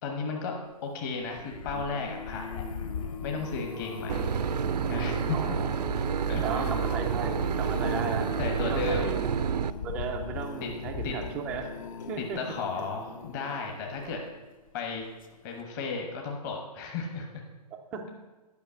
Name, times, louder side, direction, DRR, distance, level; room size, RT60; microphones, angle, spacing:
voice 1, 0.0-2.6 3.2-4.3 4.9-5.6 6.3-6.8 8.4-9.2 10.6-10.7 11.0-11.2 12.2-14.2 14.7-15.1 15.4-17.4, left 4 dB, 30° left, 1 dB, 1.2 m, -34 dB
sound 1, 1.1-14.5 15.0-15.3 15.6-15.7, left 5 dB, 55° left, 1.1 m, -39 dB
Clock, 4.1-13.2, left 2 dB, 85° left, 2.2 m, -50 dB
Boat Water vehicle / Engine, 4.1-9.7, right 7 dB, 75° right, 0.5 m, -29 dB
voice 2, 5.3-5.7 6.4-8.3 8.6-9.2 9.8-11.7 12.1-12.4 14.0-14.1 17.9-18.1, right 6 dB, 5° right, 3 dB, 0.3 m, -35 dB
11.0 x 5.7 x 6.9 m, 1.2 s
hypercardioid pair, 155°, 21 cm